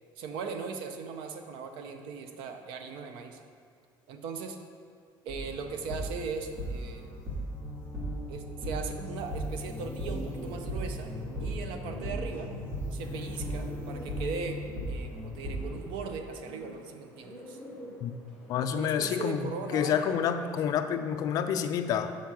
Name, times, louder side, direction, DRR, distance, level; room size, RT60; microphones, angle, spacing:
voice 1, 0.2-3.4 4.1-4.6 5.2-7.1 8.3-11.1 11.4-12.5 12.9-17.6 18.6-20.6, right 5 dB, 65° right, 6 dB, 0.7 m, -39 dB
sound 1, 5.3-15.9, equal, 30° right, 1.7 m, -37 dB
Bird, 9.8-19.5, equal, 5° right, 1.7 m, -47 dB
voice 2, 18.5-22.2, left 8 dB, 45° left, 9 dB, 0.4 m, -29 dB
7.1 x 4.6 x 6.0 m, 2.1 s
cardioid pair, 180°, 9 cm